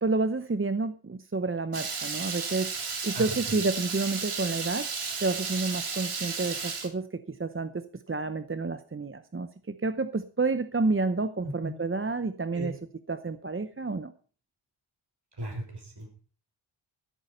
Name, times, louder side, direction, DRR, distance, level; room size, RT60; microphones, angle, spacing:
voice 1, 0.0-4.9 5.2-12.7 13.1-14.1, right 3 dB, 25° right, 11 dB, 0.8 m, -30 dB
Water tap faucet / Liquid, 1.7-6.9, right 5 dB, 90° right, 3.1 m, -33 dB
voice 2, 3.1-3.6 11.4-11.7 12.5-12.7 15.4-16.1, right 1 dB, 55° right, 1 dB, 6.6 m, -37 dB
15.5 x 8.9 x 5.5 m, 0.40 s
wide cardioid pair, 85°, 49 cm